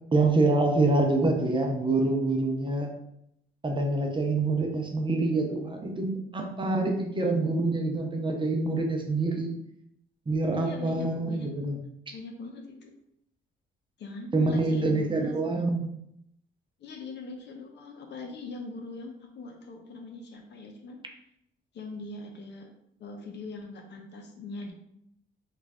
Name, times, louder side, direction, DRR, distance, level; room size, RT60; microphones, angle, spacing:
voice 1, 0.1-2.9 3.6-9.5 10.3-11.8 14.3-15.9, right 2 dB, 25° right, 2 dB, 0.6 m, -26 dB
voice 2, 10.5-11.8 12.1-12.9 14.0-15.6 16.8-21.0 21.7-22.7 23.0-24.7, left 3 dB, 60° left, 2 dB, 0.8 m, -41 dB
3.2 x 2.5 x 3.4 m, 0.77 s
cardioid pair, 90°, 20 cm